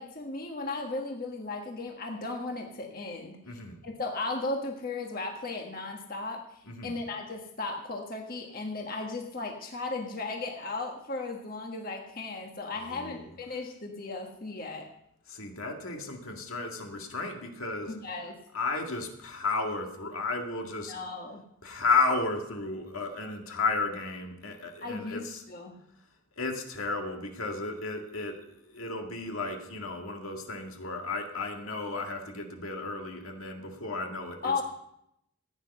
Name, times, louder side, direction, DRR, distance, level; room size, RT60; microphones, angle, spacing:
voice 1, 0.0-3.4 3.8-14.9 17.8-18.4 20.9-21.4 24.8-25.8 34.4-34.6, left 3 dB, 40° left, 1 dB, 1.5 m, -36 dB
voice 2, 3.4-3.8 6.7-7.0 12.7-13.3 15.3-17.9 18.5-20.9 21.6-25.4 26.4-34.6, left 3 dB, 80° left, 3 dB, 2.0 m, -33 dB
15.5 x 9.6 x 5.5 m, 0.76 s
head